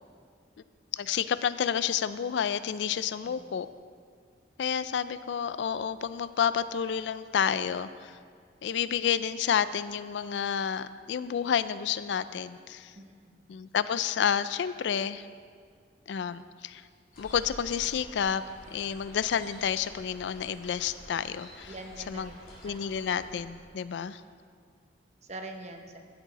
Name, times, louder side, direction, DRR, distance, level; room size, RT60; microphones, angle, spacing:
voice 1, 0.9-3.7 4.6-8.2 8.6-12.9 13.5-15.3 16.1-16.8 17.2-21.7 22.1-22.3 22.6-24.2, left 8 dB, 75° left, 15 dB, 0.3 m, -30 dB
voice 2, 12.9-13.5 21.7-22.4 22.6-22.8 25.2-26.0, right 2 dB, 40° right, 4 dB, 0.8 m, -44 dB
sound 1, 17.1-23.4, left 1 dB, 50° left, 3.0 m, -49 dB
14.0 x 7.3 x 4.1 m, 2.1 s
head